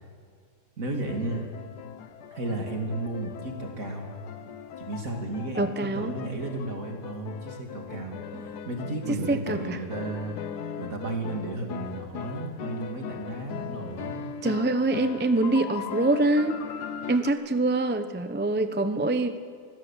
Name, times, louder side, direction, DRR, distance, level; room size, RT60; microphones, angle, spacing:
voice 1, 0.8-1.5 2.3-4.1 4.8-10.4 10.8-14.3, right 2 dB, 55° right, 2 dB, 3.1 m, -33 dB
sound 1, 1.1-17.3, left 8 dB, 90° left, 1.5 m, -39 dB
voice 2, 5.6-6.2 8.3-8.4 9.3-9.8 14.4-16.6 17.1-19.4, right 2 dB, 15° right, 9 dB, 0.4 m, -25 dB
24.5 x 15.5 x 7.5 m, 2.2 s
omnidirectional pair, 1.7 m